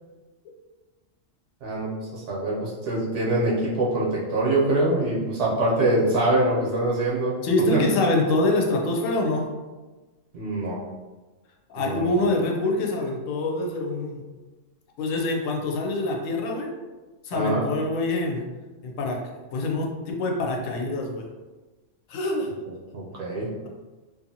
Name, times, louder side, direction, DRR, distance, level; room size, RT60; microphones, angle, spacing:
voice 1, 1.6-7.4 7.7-7.8 10.3-10.8 11.8-12.3 17.3-17.6 22.9-23.5, right 2 dB, 65° right, -5 dB, 1.1 m, -24 dB
voice 2, 7.4-9.5 11.7-14.2 15.0-16.7 17.2-18.4 18.8-21.3 22.1-22.5, left 2 dB, 85° left, 1 dB, 1.0 m, -25 dB
2.6 x 2.5 x 2.7 m, 1.2 s
omnidirectional pair, 1.3 m